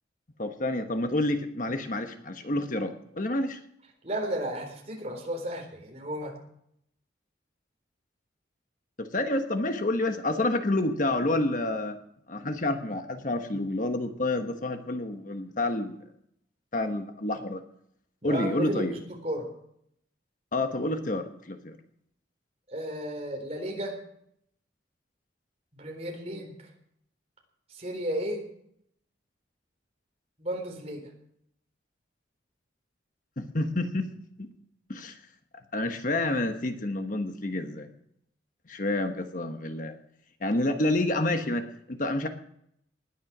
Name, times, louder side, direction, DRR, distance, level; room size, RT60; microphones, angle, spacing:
voice 1, 0.4-3.6 9.0-12.0 12.3-16.0 16.7-17.6 18.2-19.0 20.5-21.8 33.4-34.1 34.4-34.5 34.9-35.2 35.7-37.9 38.7-40.0 40.4-42.3, left 2 dB, 45° left, 7 dB, 1.2 m, -29 dB
voice 2, 4.0-6.3 18.2-19.5 22.7-23.9 25.7-26.7 27.7-28.4 30.4-31.0, right 1 dB, 35° right, 2 dB, 4.0 m, -33 dB
20.0 x 11.0 x 6.1 m, 0.72 s
head